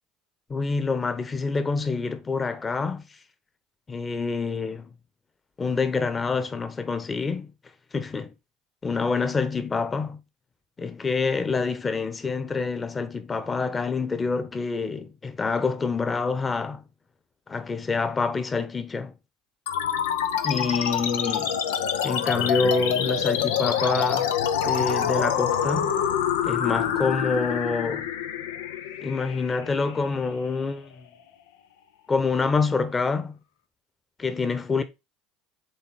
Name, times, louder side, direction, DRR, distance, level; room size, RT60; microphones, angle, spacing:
voice 1, 0.5-3.0 3.9-4.9 5.6-7.5 7.9-8.3 8.8-10.2 10.8-16.8 17.5-19.1 20.4-21.6 22.0-24.3 24.6-25.9 26.4-28.1 29.0-31.0 32.1-33.4 34.2-34.8, left 4 dB, 25° left, 1.2 m, -27 dB
sound 1, 19.7-30.6, left 8 dB, 80° left, 0.7 m, -26 dB
6.9 x 4.0 x 3.7 m
hypercardioid pair, 75°, 0 cm